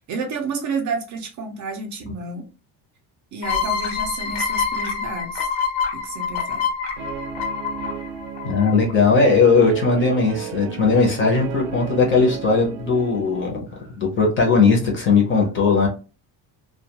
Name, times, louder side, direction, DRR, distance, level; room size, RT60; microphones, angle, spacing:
voice 1, 0.1-2.5 3.3-5.5 5.9-6.6, right 4 dB, 45° right, 4 dB, 0.5 m, -30 dB
sound 1, 3.4-8.9, left 6 dB, 80° left, 0.9 m, -26 dB
Guitar, 7.0-13.5, right 7 dB, 80° right, 0.6 m, -34 dB
voice 2, 8.4-15.9, left 4 dB, 30° left, 0 dB, 0.6 m, -18 dB
2.2 x 2.2 x 2.8 m, 0.33 s
cardioid pair, 180°, 44 cm